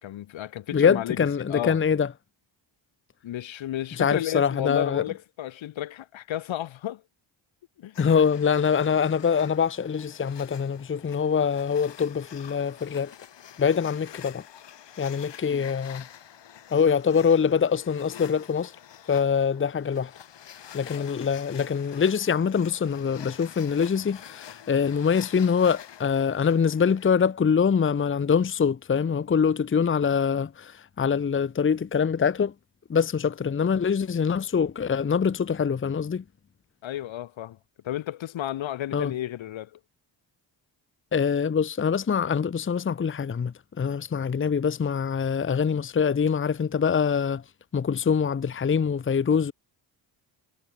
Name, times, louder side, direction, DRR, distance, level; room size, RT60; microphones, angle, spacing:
voice 1, 0.0-1.8 3.2-7.0 7.8-7.9 15.5-15.7 21.0-21.1 36.8-37.6 37.8-39.8, left 12 dB, 90° left, 3.7 m, -33 dB
voice 2, 0.7-2.1 4.0-5.0 8.0-13.1 13.6-14.4 15.0-16.0 16.7-18.7 19.1-20.1 20.7-30.7 31.0-32.5 32.9-36.2 38.9-39.1 41.1-47.4 47.7-49.5, left 6 dB, 25° left, 0.9 m, -24 dB
sound 1, 7.9-27.3, left 9 dB, 70° left, 6.8 m, -47 dB
cardioid pair, 110°, 45 cm